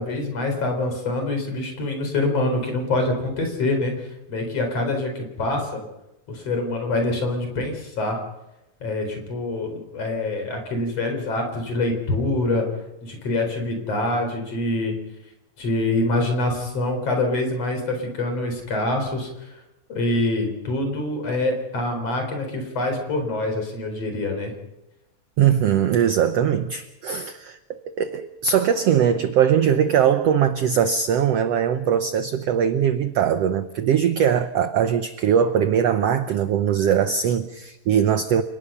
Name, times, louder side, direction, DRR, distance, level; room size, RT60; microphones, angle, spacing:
voice 1, 0.0-3.9 4.3-5.8 6.3-8.2 8.8-12.7 13.0-14.9 15.6-19.3 19.9-24.5, left 2 dB, 45° left, 4 dB, 5.0 m, -25 dB
voice 2, 25.4-38.4, right 8 dB, 75° right, 9 dB, 1.4 m, -21 dB
29.0 x 18.5 x 5.6 m, 0.93 s
omnidirectional pair, 3.9 m